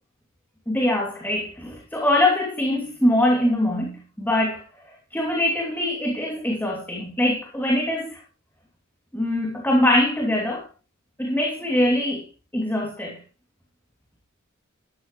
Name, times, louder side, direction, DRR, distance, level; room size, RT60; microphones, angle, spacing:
voice 1, 0.7-4.6 5.1-8.2 9.1-10.7 11.2-12.2 12.5-13.2, left 1 dB, 10° left, 2.8 m, -23 dB
13.0 x 13.0 x 3.2 m
head